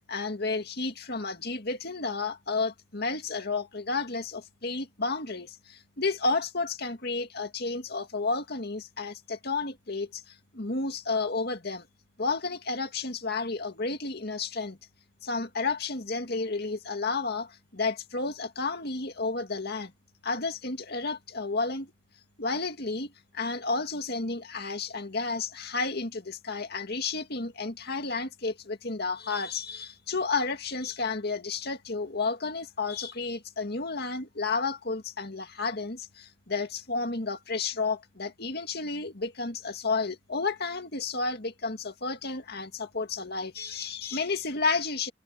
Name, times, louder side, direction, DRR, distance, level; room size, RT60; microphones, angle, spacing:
voice 1, 0.1-11.9 12.2-14.8 15.2-19.9 20.2-21.9 22.4-45.1, left 3 dB, 55° left, 2.2 m, -31 dB
head